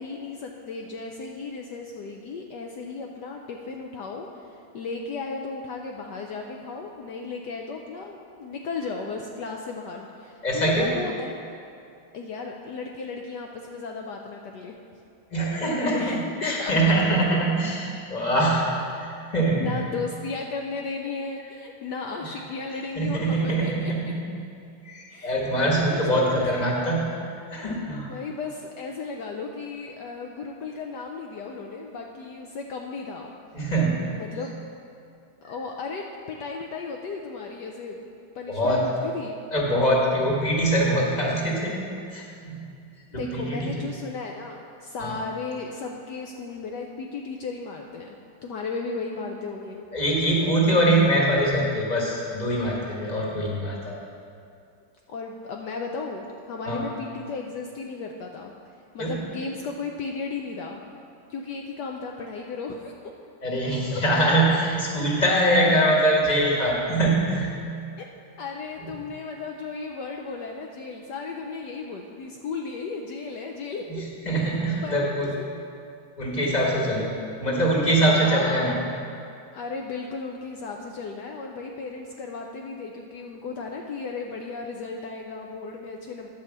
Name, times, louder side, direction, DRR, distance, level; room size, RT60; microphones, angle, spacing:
voice 1, 0.0-11.3 12.1-14.7 15.9-16.7 19.6-23.9 25.1-27.0 28.1-33.3 34.1-34.7 35.4-38.0 38.3-39.4 43.1-48.1 48.4-49.8 55.1-60.8 61.3-62.9 63.6-64.2 68.0-68.1 68.4-74.0 74.4-75.1 75.3-75.5 76.5-76.8 78.1-78.9 79.5-86.3, left 4 dB, 70° left, 2 dB, 1.0 m, -35 dB
voice 2, 10.4-10.9 15.3-18.7 19.0-19.8 22.9-24.2 24.8-27.2 27.5-28.1 33.5-34.1 38.5-38.9 39.5-42.7 43.1-43.8 45.0-45.1 49.9-53.9 56.7-56.8 59.0-59.1 63.4-67.5 73.9-75.3 76.2-77.1 77.4-78.7, right 1 dB, 20° left, -3 dB, 1.4 m, -23 dB
10.0 x 4.9 x 7.2 m, 2.4 s
omnidirectional pair, 2.4 m